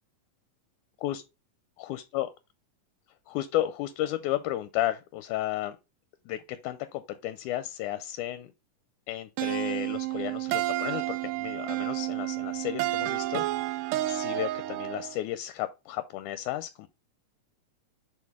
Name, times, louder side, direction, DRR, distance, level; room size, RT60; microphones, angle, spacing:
voice 1, 1.8-2.3 3.3-5.8 6.3-8.5 9.1-16.9, left 13 dB, 80° left, 1.9 m, -33 dB
sound 1, 9.4-15.2, right 16 dB, 85° right, 2.2 m, -30 dB
6.5 x 4.2 x 3.5 m
omnidirectional pair, 3.7 m